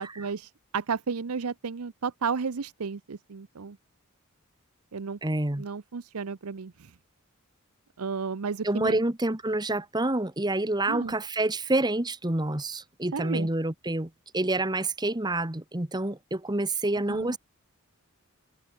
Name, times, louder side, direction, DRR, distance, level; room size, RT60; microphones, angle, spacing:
voice 1, 0.0-3.8 4.9-5.2 5.6-6.9 8.0-9.0 10.9-11.1 13.1-13.5 17.1-17.4, right 5 dB, 80° right, 0.7 m, -33 dB
voice 2, 5.2-5.6 8.6-17.4, right 2 dB, 20° right, 1.3 m, -28 dB
head